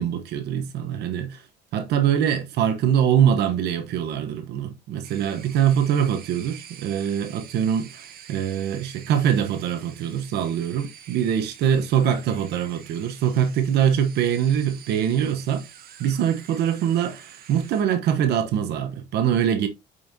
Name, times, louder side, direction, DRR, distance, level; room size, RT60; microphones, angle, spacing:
voice 1, 0.0-1.5 1.7-15.7 16.0-19.7, right 9 dB, 80° right, 1.1 m, -23 dB
sound 1, 5.0-17.8, right 9 dB, 60° right, 1.3 m, -47 dB
7.8 x 5.6 x 2.8 m
cardioid pair, 110°, 17 cm